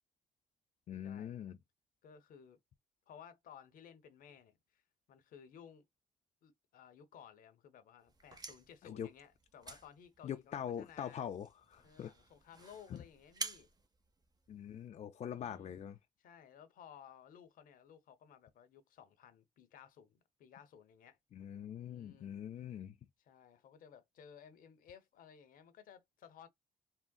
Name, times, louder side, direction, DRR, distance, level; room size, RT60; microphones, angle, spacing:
voice 1, 0.9-1.6 8.8-9.1 9.7-9.8 10.2-12.1 12.9-13.0 14.5-16.0 21.3-23.0, left 9 dB, 50° left, 0.4 m, -43 dB
voice 2, 2.0-2.6 3.1-4.8 5.1-5.8 6.4-11.2 11.8-13.7 15.3-15.7 16.2-21.2 21.8-22.4 23.2-26.5, left 8 dB, 75° left, 0.8 m, -58 dB
sound 1, 8.1-14.9, right 3 dB, 25° right, 0.7 m, -50 dB
3.7 x 2.1 x 2.2 m
cardioid pair, 75°, 15 cm